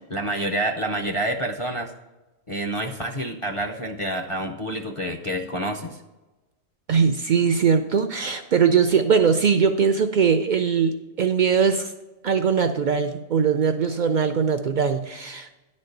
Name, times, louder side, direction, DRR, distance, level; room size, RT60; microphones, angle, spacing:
voice 1, 0.1-1.9 2.5-6.0, right 1 dB, 40° left, 2 dB, 0.4 m, -28 dB
voice 2, 6.9-11.9 12.2-15.5, right 6 dB, 75° right, 8 dB, 0.4 m, -21 dB
10.5 x 4.3 x 6.5 m, 1.1 s
omnidirectional pair, 1.3 m